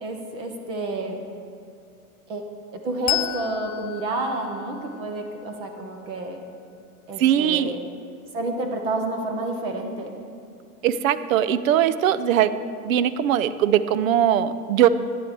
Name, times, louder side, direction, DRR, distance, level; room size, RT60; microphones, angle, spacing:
voice 1, 0.0-1.2 2.3-2.4 2.7-6.4 7.1-7.8 8.3-10.1, right 2 dB, 15° right, 4 dB, 0.3 m, -29 dB
Bell, 3.1-6.2, left 16 dB, 60° left, 0.5 m, -32 dB
voice 2, 7.2-7.7 10.8-12.5 12.8-14.9, right 10 dB, 60° right, 14 dB, 0.7 m, -20 dB
14.5 x 9.6 x 3.4 m, 2.5 s
hypercardioid pair, 130°, 45 cm